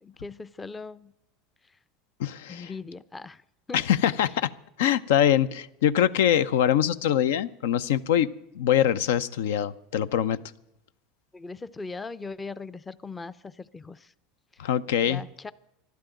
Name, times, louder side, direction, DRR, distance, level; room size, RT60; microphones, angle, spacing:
voice 1, 0.0-1.1 2.5-3.4 3.7-3.8 11.3-14.0 15.1-15.5, left 4 dB, 15° left, 0.5 m, -39 dB
voice 2, 2.2-2.7 3.7-4.5 4.8-10.4 14.6-15.2, left 10 dB, 90° left, 0.6 m, -23 dB
13.0 x 11.5 x 9.1 m
supercardioid pair, 130°, 0 cm